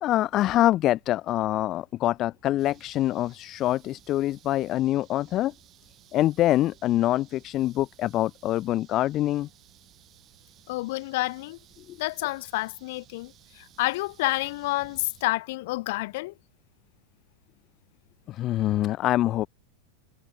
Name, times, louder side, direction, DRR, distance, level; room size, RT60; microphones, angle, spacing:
voice 1, 0.0-5.5 6.1-9.5 11.9-12.0 18.3-19.5, left 14 dB, 35° left, 0.5 m, -25 dB
sound 1, 2.6-15.2, right 12 dB, 30° right, 4.1 m, -57 dB
voice 2, 10.7-11.6 12.0-16.3, left 21 dB, 50° left, 1.4 m, -29 dB
figure-of-eight pair, 90°, 0 cm